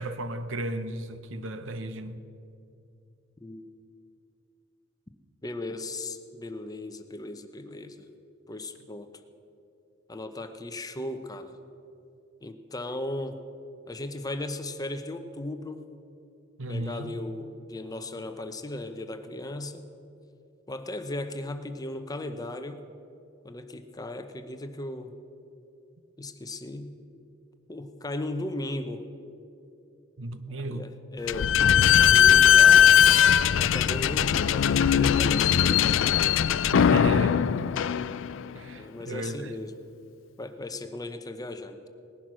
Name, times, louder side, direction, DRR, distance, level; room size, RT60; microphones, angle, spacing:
voice 1, 0.0-2.2 16.6-17.2 30.2-30.9 36.7-37.7 38.5-39.6, right 1 dB, 80° right, 0.8 m, -34 dB
voice 2, 3.4-3.7 5.4-8.1 8.5-9.1 10.1-11.5 12.4-13.4 13.9-15.9 16.7-19.9 20.7-22.8 23.4-25.1 26.2-26.9 27.7-29.1 30.5-31.5 31.8-33.0 33.6-35.9 38.7-39.7 40.4-41.9, left 2 dB, 20° left, 0.8 m, -36 dB
Slam / Squeak, 31.3-38.5, left 9 dB, 80° left, 0.4 m, -20 dB
19.0 x 10.5 x 6.2 m
head